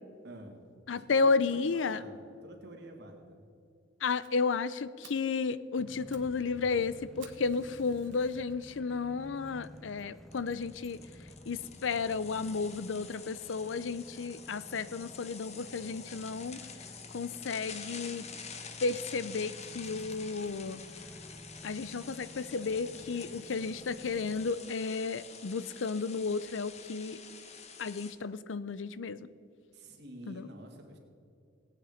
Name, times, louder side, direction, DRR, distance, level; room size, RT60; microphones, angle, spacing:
voice 1, 0.2-0.6 0.9-3.5 29.7-31.0, right 1 dB, 65° right, 2 dB, 2.1 m, -49 dB
voice 2, 0.9-2.0 4.0-11.0 11.5-16.6 17.1-18.2 18.8-20.8 21.6-27.2 27.8-29.3 30.3-30.5, left 4 dB, 80° left, 16 dB, 0.5 m, -33 dB
Fire, 4.2-4.3 4.7-4.8 5.0-5.3 5.8-6.3 6.6-6.7 7.2-8.5 9.1-9.2 9.8-9.9 10.1-10.2 10.6-10.7, right 8 dB, 90° right, 1.5 m, -56 dB
sound 1, 5.8-24.5, equal, ahead, 0.7 m, -52 dB
sound 2, 9.2-9.3 9.6-9.8 10.3-28.1, left 6 dB, 35° left, 1.0 m, -48 dB
17.5 x 9.4 x 5.1 m, 2.4 s
head